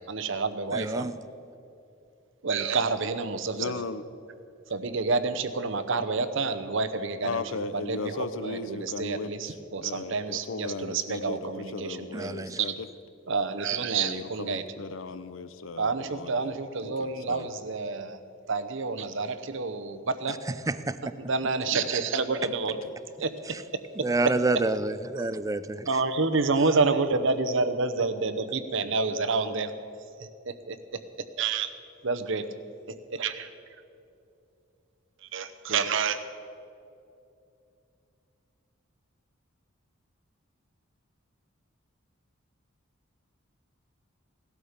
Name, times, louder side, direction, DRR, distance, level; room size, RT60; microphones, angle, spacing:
voice 1, 0.1-1.1 2.4-3.8 4.7-12.3 12.6-12.7 13.3-14.6 15.8-18.2 18.5-20.4 21.0-22.8 23.2-23.3 24.0-24.7 25.2-25.3 25.9-29.7 30.2-30.8 31.4-31.7 32.0-32.5 33.1-33.5 35.3-36.2, right 4 dB, 65° right, 0.8 m, -29 dB
voice 2, 0.7-1.1 12.1-12.6 20.7-21.0 24.0-25.9, right 2 dB, 15° right, 0.4 m, -28 dB
voice 3, 3.5-4.0 7.2-12.9 13.9-16.6 16.8-17.5 21.7-21.9 22.8-22.9, left 3 dB, 65° left, 0.6 m, -37 dB
17.0 x 12.5 x 5.1 m
head